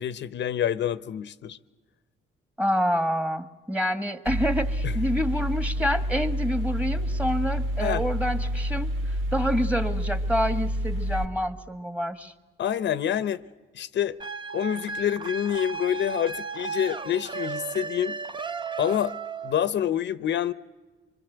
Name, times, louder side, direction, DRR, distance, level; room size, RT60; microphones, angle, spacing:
voice 1, 0.0-1.6 4.8-4.9 7.8-8.0 12.6-13.4 13.7-14.2 14.5-18.2 18.8-19.2 19.4-20.5, left 10 dB, 65° left, 0.8 m, -27 dB
voice 2, 2.6-8.9 9.3-12.3, equal, 5° right, 1.7 m, -27 dB
Mechanical fan, 4.3-11.2, equal, 75° right, 2.3 m, -28 dB
sound 1, 14.2-19.7, right 5 dB, 25° right, 0.8 m, -35 dB
25.5 x 23.5 x 8.1 m
cardioid pair, 90°, 20 cm